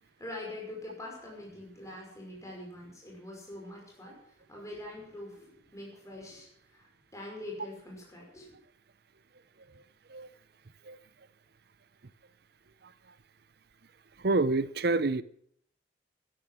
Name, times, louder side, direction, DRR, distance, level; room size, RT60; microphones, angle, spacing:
voice 1, 0.0-8.5, left 1 dB, 15° left, 5.4 m, -44 dB
voice 2, 14.2-15.2, right 3 dB, 60° right, 0.7 m, -27 dB
12.5 x 11.5 x 7.5 m
head